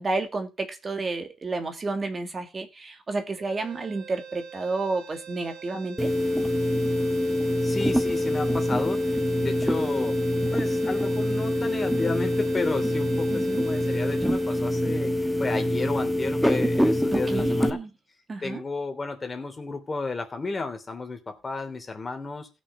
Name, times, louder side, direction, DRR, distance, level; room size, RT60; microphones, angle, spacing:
voice 1, 0.0-6.1 13.3-13.6 17.1-17.9 18.3-18.6, right 3 dB, 35° right, 6 dB, 2.0 m, -31 dB
sound 1, 3.4-15.6, right 8 dB, 80° right, 2.0 m, -45 dB
sound 2, 6.0-17.7, left 1 dB, ahead, 1.3 m, -25 dB
voice 2, 7.6-10.2 10.5-17.8 18.4-22.5, left 3 dB, 30° left, 6 dB, 3.1 m, -33 dB
16.0 x 6.3 x 5.5 m, 0.28 s
cardioid pair, 90°, 0 cm